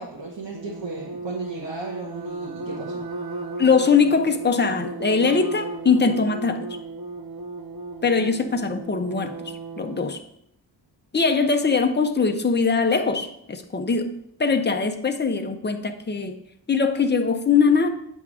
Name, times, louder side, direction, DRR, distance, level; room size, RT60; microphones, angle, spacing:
voice 1, 0.0-3.0, right 3 dB, 75° right, -3 dB, 1.5 m, -35 dB
sound 1, 0.5-10.2, right 2 dB, 55° right, 0.8 m, -35 dB
voice 2, 3.6-6.7 8.0-10.2 11.1-16.4 16.7-17.9, left 5 dB, 25° left, 6 dB, 0.7 m, -21 dB
8.2 x 3.6 x 6.1 m, 0.73 s
wide cardioid pair, 120°, 43 cm